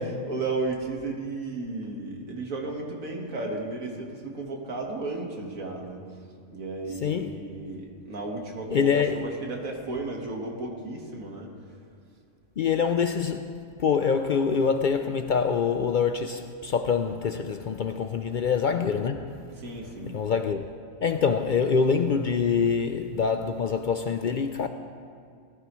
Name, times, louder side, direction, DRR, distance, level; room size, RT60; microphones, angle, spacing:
voice 1, 0.0-6.0 6.5-11.5 19.6-20.2, right 3 dB, 80° right, 2.0 m, -34 dB
voice 2, 7.0-7.3 8.7-9.3 12.6-13.5 13.8-19.4 20.1-20.6 21.0-24.7, left 6 dB, 70° left, 0.4 m, -25 dB
19.0 x 14.5 x 3.1 m
omnidirectional pair, 1.4 m